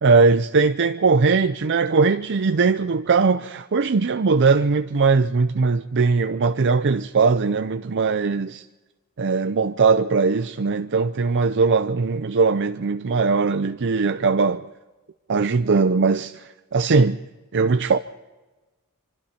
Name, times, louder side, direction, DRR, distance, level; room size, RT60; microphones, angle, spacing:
voice 1, 0.0-8.6 9.2-14.7 15.3-17.2 17.5-18.0, right 4 dB, 55° right, 0.6 m, -20 dB
25.5 x 25.0 x 4.4 m
head